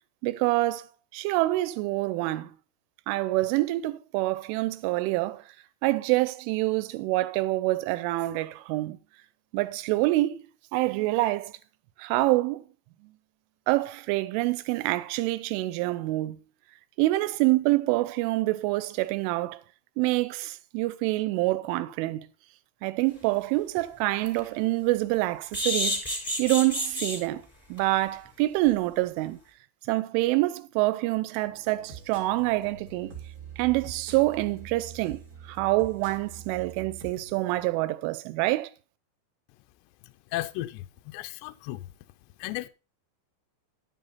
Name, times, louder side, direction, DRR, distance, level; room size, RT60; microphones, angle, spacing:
voice 1, 0.2-0.9 1.1-2.5 3.1-5.4 5.8-9.0 9.5-10.4 10.7-11.5 12.0-12.6 13.7-16.4 17.0-19.6 20.0-22.3 22.8-26.0 26.4-27.4 27.7-29.4 29.9-33.1 33.6-35.2 35.5-38.7, right 19 dB, 85° right, 3.1 m, -26 dB
sound 1, 23.2-23.3 23.8-23.9 24.2-24.4 25.5-27.2 27.8-27.9 28.2-28.3 28.7-28.8, left 1 dB, 5° left, 2.9 m, -29 dB
sound 2, 31.4-37.7, right 6 dB, 50° right, 0.9 m, -45 dB
voice 2, 40.3-41.8 42.4-42.7, left 16 dB, 85° left, 2.5 m, -34 dB
11.0 x 7.4 x 4.2 m
omnidirectional pair, 5.6 m